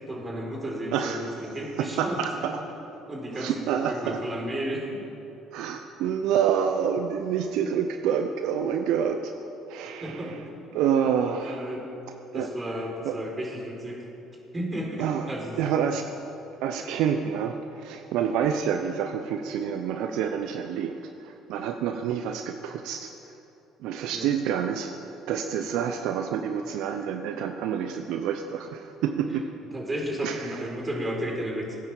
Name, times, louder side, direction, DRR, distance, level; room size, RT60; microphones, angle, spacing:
voice 1, 0.1-2.5 3.1-5.0 10.0-10.7 11.4-11.9 12.3-14.0 14.5-15.6 24.1-24.3 29.7-31.8, right 1 dB, 25° right, 0 dB, 4.2 m, -33 dB
voice 2, 0.9-1.3 1.8-2.5 3.3-4.2 5.5-9.3 9.7-10.4 10.7-11.7 12.3-12.5 13.0-13.2 15.0-15.3 15.6-16.0 16.6-23.3 23.8-29.4 30.2-30.7, right 8 dB, 70° right, 6 dB, 0.7 m, -28 dB
17.5 x 9.6 x 7.2 m, 2.9 s
hypercardioid pair, 60°, 0 cm